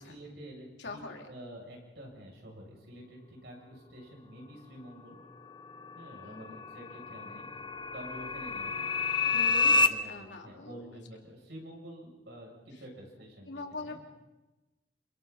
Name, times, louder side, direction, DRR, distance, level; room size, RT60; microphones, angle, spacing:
voice 1, 0.0-1.0 1.3-5.2 5.9-7.5 7.9-8.9 9.2-14.0, equal, 75° right, -1 dB, 7.6 m, -48 dB
voice 2, 0.8-1.3 6.2-6.5 9.3-11.0 12.7-12.8 13.4-14.0, left 3 dB, 85° left, 2 dB, 3.0 m, -43 dB
sound 1, 5.6-9.9, left 4 dB, 25° left, 0.7 m, -29 dB
29.0 x 28.5 x 4.2 m, 1.1 s
head